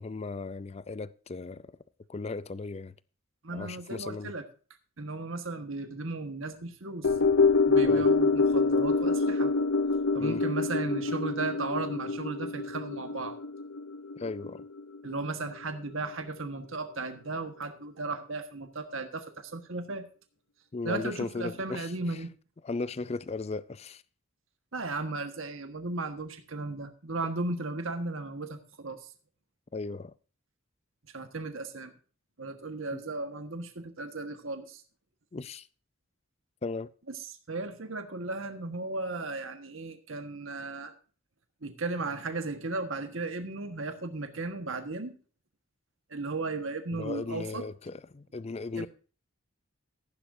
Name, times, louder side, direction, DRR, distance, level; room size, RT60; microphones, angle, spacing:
voice 1, 0.0-1.6 2.1-2.9 3.5-4.3 7.8-8.1 10.2-10.4 14.2-14.6 20.7-21.9 22.6-24.0 29.7-30.1 32.9-33.0 35.3-35.7 36.6-36.9 46.9-48.9, left 3 dB, 30° left, 0.4 m, -36 dB
voice 2, 3.4-4.4 5.0-7.1 7.7-9.5 10.1-13.4 15.0-20.1 20.8-22.3 24.7-29.1 31.1-31.9 32.4-34.8 37.1-40.9 41.6-45.2 46.1-47.7 48.8-48.9, right 3 dB, 75° right, 1.5 m, -35 dB
sound 1, 7.0-15.5 15.8-15.9, left 4 dB, 80° left, 0.7 m, -26 dB
14.5 x 11.5 x 2.7 m
head